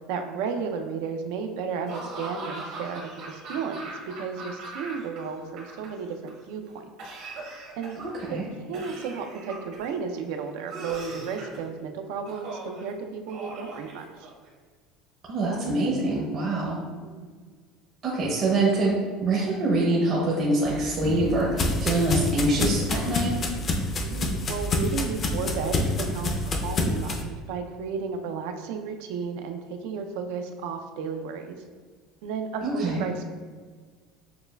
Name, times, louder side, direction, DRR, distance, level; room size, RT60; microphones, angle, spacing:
voice 1, 0.1-6.9 7.8-8.0 8.3-8.4 8.7-14.3 17.0-17.3 24.0-31.6 32.2-33.3, right 5 dB, 80° right, 6 dB, 0.4 m, -33 dB
Laughter / Cough, 1.9-5.2 5.4-6.3 7.0-8.1 8.7-9.9 10.7-11.6 12.3-12.8 13.3-14.5, right 2 dB, 60° right, 1.1 m, -39 dB
voice 2, 8.0-8.5 15.3-16.8 18.0-19.0 19.2-23.3 32.6-33.1, right 2 dB, 40° right, -5 dB, 0.7 m, -25 dB
sound 1, 20.6-27.2, left 2 dB, 30° left, 0.4 m, -28 dB
6.8 x 2.3 x 2.2 m, 1.5 s
cardioid pair, 145°, 0 cm